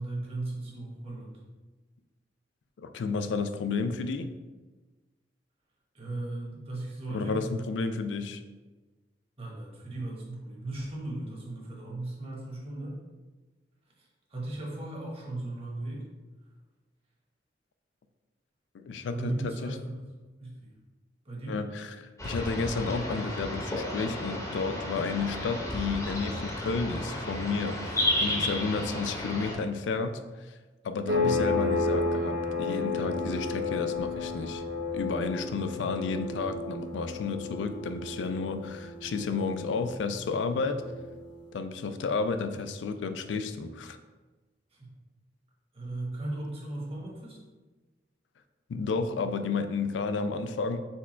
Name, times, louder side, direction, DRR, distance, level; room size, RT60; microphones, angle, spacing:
voice 1, 0.0-1.4 5.9-7.6 9.4-13.0 14.0-16.0 19.1-19.9 20.4-20.7 21.2-21.6 31.2-31.5 44.7-44.9 45.7-47.4, right 2 dB, 35° right, -3 dB, 1.1 m, -37 dB
voice 2, 2.8-4.3 7.1-8.4 18.7-19.8 21.5-30.5 30.8-34.6 34.9-40.8 41.5-44.0 48.7-50.8, left 4 dB, 80° left, 9 dB, 0.3 m, -32 dB
sound 1, 22.2-29.5, left 1 dB, 20° left, 0.7 m, -32 dB
sound 2, 31.1-41.4, left 3 dB, 85° right, 0.9 m, -32 dB
4.4 x 2.3 x 4.3 m, 1.2 s
head